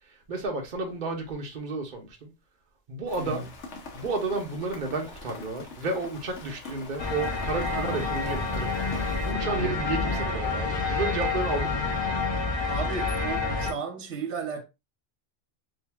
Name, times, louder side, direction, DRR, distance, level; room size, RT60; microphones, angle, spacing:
voice 1, 0.3-2.3 2.9-3.5 3.9-8.9 9.2-11.9, right 3 dB, 45° right, 1.0 m, -32 dB
Rain, 3.1-9.3, left 3 dB, 85° left, 1.3 m, -42 dB
sound 1, 7.0-13.7, left 3 dB, 35° left, 0.5 m, -28 dB
voice 2, 7.7-8.1 9.5-9.8 12.7-14.6, right 5 dB, 85° right, 1.0 m, -34 dB
5.1 x 2.8 x 2.2 m
omnidirectional pair, 1.2 m